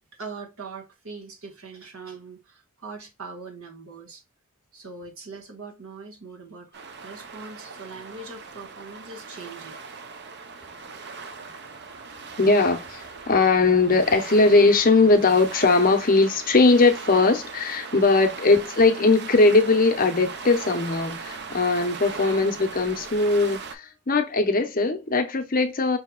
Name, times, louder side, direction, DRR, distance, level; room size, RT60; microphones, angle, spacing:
voice 1, 0.2-4.2 4.7-6.7 7.0-9.8, right 4 dB, 70° right, 1.4 m, -41 dB
sound 1, 6.7-23.7, right 5 dB, 50° right, 0.5 m, -39 dB
voice 2, 12.4-26.0, left 3 dB, 40° left, 0.7 m, -20 dB
5.6 x 2.8 x 2.2 m
head